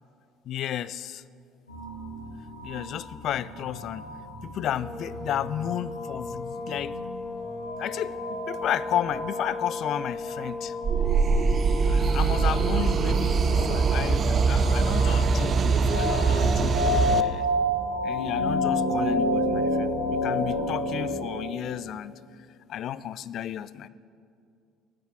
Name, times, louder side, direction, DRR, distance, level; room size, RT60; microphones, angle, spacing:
voice 1, 0.5-1.2 2.6-4.1 4.4-7.0 7.8-8.2 8.5-10.7 11.9-17.5 18.0-22.1 22.7-23.9, left 11 dB, 50° left, 18 dB, 0.4 m, -33 dB
sound 1, 1.7-21.2, left 1 dB, 90° left, 2.4 m, -31 dB
sound 2, 4.7-15.7, left 3 dB, 20° left, 1.1 m, -37 dB
sound 3, 10.8-17.2, right 5 dB, 40° right, 0.7 m, -23 dB
15.5 x 11.0 x 6.4 m, 2.4 s
figure-of-eight pair, 55°, 0 cm